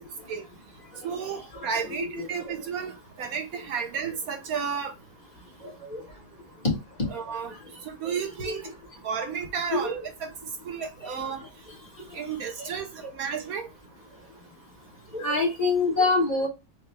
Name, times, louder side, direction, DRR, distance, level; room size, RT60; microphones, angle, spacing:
voice 1, 1.0-4.9 7.1-7.5 7.8-8.7 9.0-10.3 10.6-11.4 12.1-13.7, right 6 dB, 70° right, 1.1 m, -32 dB
voice 2, 9.7-10.0 12.6-12.7 15.1-16.5, left 3 dB, 30° left, 1.3 m, -25 dB
4.4 x 2.3 x 3.1 m
omnidirectional pair, 1.7 m